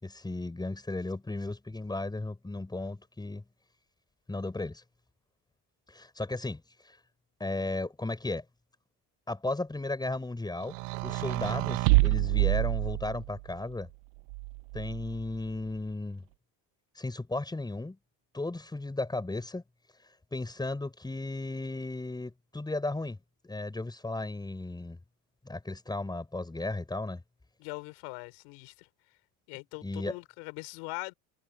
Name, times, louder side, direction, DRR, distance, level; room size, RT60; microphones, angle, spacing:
voice 1, 0.0-3.4 4.3-4.8 5.9-7.0 7.4-8.4 9.3-10.8 11.0-13.9 14.7-16.2 16.9-18.0 18.3-19.6 20.3-23.2 23.4-25.0 25.4-27.2 29.8-30.2, left 2 dB, 10° left, 6.4 m, -35 dB
sound 1, 10.7-13.4 14.3-15.3, right 24 dB, 65° right, 0.9 m, -27 dB
voice 2, 27.6-28.9 29.5-31.1, left 32 dB, 70° left, 6.0 m, -41 dB
supercardioid pair, 125°, 45 cm